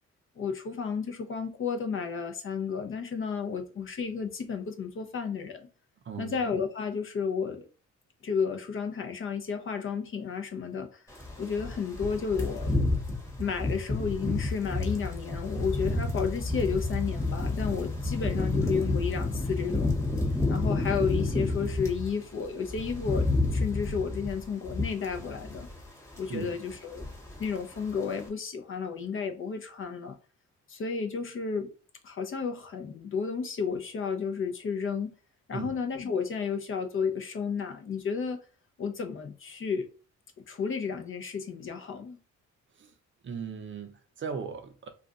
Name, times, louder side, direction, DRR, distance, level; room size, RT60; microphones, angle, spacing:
voice 1, 0.4-5.7 6.2-7.7 8.2-11.0 11.4-12.8 13.4-19.9 20.5-25.7 26.2-27.1 27.4-30.2 30.7-31.7 32.0-35.1 35.5-38.4 38.8-39.9 40.5-42.2, left 6 dB, 45° left, 0.6 m, -32 dB
voice 2, 6.1-6.4 26.3-26.6 35.5-35.7 42.8-42.9 43.2-44.9, right 6 dB, 40° right, 0.6 m, -37 dB
sound 1, 11.2-22.1 22.4-25.9 26.1-26.4 26.7-27.5 27.8-28.0, left 2 dB, 10° left, 1.1 m, -30 dB
2.4 x 2.3 x 3.8 m
cardioid pair, 90°, 30 cm